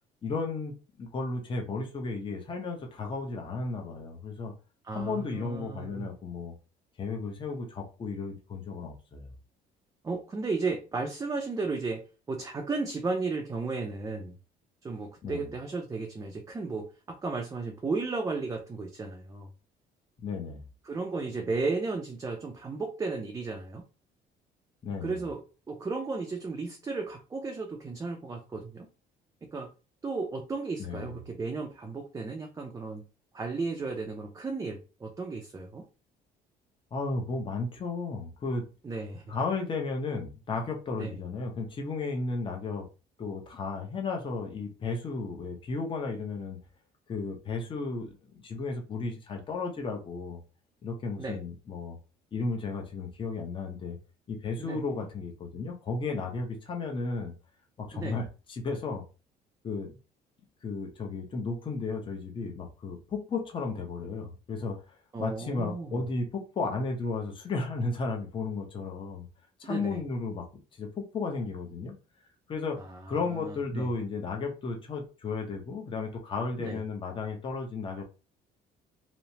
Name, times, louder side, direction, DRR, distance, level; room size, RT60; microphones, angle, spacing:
voice 1, 0.2-4.5 4.9-6.5 7.0-9.3 15.2-15.5 20.2-20.6 24.8-25.2 30.8-31.2 36.9-38.6 39.3-42.9 43.2-46.6 47.1-50.4 50.8-52.0 52.3-54.0 54.3-57.3 57.8-59.0 59.6-59.9 60.6-64.8 65.2-69.3 69.6-70.5 70.8-71.9 72.5-72.8 73.1-78.0, left 4 dB, 30° left, 0.7 m, -34 dB
voice 2, 4.8-6.1 10.0-14.4 14.8-19.5 20.8-23.8 25.0-25.4 25.7-28.9 29.5-29.7 30.0-33.0 33.3-35.8 38.8-39.3 41.0-41.1 51.2-51.4 54.6-55.1 57.9-58.2 65.1-66.0 69.6-70.0 72.8-73.0 73.3-73.9 76.6-76.8, right 3 dB, 20° right, 0.4 m, -34 dB
3.0 x 2.0 x 2.7 m
cardioid pair, 110°, 17 cm